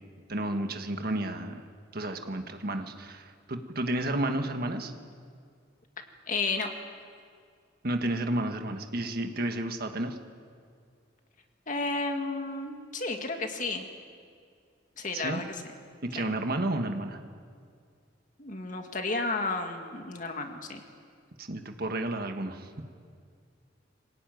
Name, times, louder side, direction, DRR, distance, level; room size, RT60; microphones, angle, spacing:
voice 1, 0.3-1.6 1.9-4.9 7.8-10.2 15.1-15.4 16.1-17.2 21.4-22.8, right 1 dB, 55° right, 5 dB, 1.7 m, -31 dB
voice 2, 6.3-6.7 11.7-13.9 15.0-15.6 16.2-16.3 18.4-20.8, left 3 dB, 45° left, 4 dB, 2.1 m, -32 dB
25.5 x 17.5 x 9.3 m, 2.2 s
head